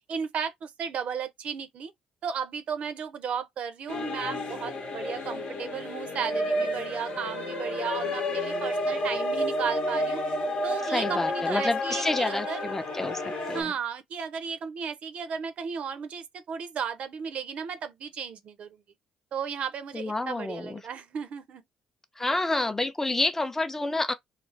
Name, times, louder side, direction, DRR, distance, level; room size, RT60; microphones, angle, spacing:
voice 1, 0.1-1.9 2.2-10.2 10.6-12.7 13.5-18.8 19.3-21.6, right 7 dB, 60° right, 0.5 m, -34 dB
sound 1, 3.9-13.6, left 1 dB, 55° left, 0.8 m, -31 dB
voice 2, 10.9-13.2 13.5-13.7 19.9-20.8 22.2-24.1, left 2 dB, 15° left, 0.5 m, -28 dB
2.4 x 2.3 x 3.2 m
supercardioid pair, 60°, 2 cm